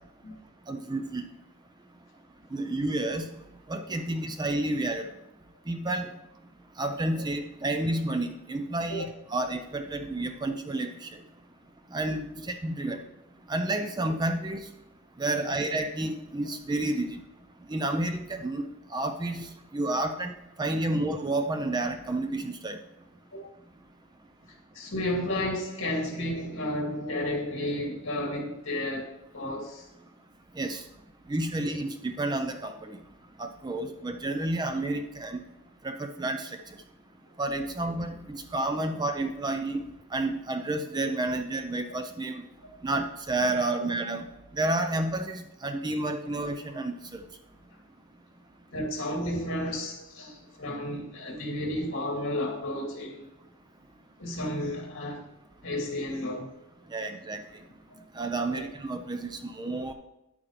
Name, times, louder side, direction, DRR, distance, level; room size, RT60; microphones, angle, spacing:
voice 1, 0.7-1.3 2.5-3.3 3.7-5.1 5.7-6.1 6.8-11.1 11.9-13.0 13.5-14.7 15.2-17.2 17.7-19.5 19.7-20.3 20.6-22.8 30.6-30.8 31.3-33.0 33.4-35.4 35.8-36.5 37.4-39.8 40.1-42.4 42.8-44.3 44.5-47.2 56.9-57.4 58.2-59.9, right 2 dB, 20° right, 0.5 m, -30 dB
voice 2, 24.7-29.9 33.9-34.0 43.7-43.8 48.7-53.3 54.2-55.2 55.6-56.5 57.9-58.0 58.5-58.6, left 1 dB, 60° left, 2.6 m, -32 dB
10.0 x 8.6 x 3.3 m
head